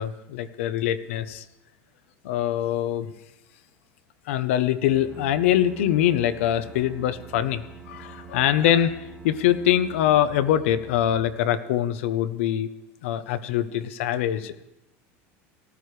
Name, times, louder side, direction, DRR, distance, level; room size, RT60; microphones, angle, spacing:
voice 1, 0.0-1.4 2.2-3.1 4.3-12.7 13.0-14.6, left 11 dB, 85° left, 13 dB, 0.9 m, -23 dB
sound 1, 4.8-11.3, right 2 dB, 45° right, 1.4 m, -48 dB
Bowed string instrument, 5.1-11.0, right 7 dB, 5° right, 1.1 m, -47 dB
18.5 x 14.0 x 3.3 m, 0.89 s
cardioid pair, 175°, 7 cm